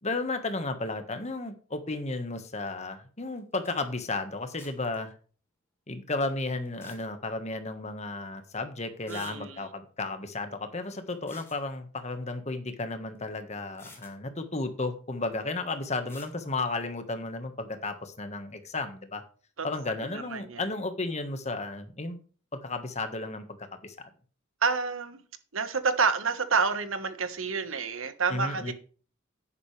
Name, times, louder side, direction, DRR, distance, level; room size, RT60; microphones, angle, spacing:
voice 1, 0.0-5.1 5.9-19.2 19.6-22.2 22.5-23.9 28.3-28.7, left 2 dB, 35° left, 8 dB, 1.5 m, -33 dB
sound 1, 3.4-3.5 3.6-3.8 4.6-5.0 6.7-7.0 8.4-8.5 9.1-9.3 11.1-11.6 13.1-13.2 13.7-14.1 16.1-16.3, left 2 dB, 10° left, 3.4 m, -51 dB
voice 2, 9.1-9.7 19.6-19.7 20.1-20.7 24.6-25.2 25.5-28.7, right 5 dB, 80° right, 10 dB, 1.4 m, -29 dB
10.5 x 10.0 x 3.3 m, 0.39 s
head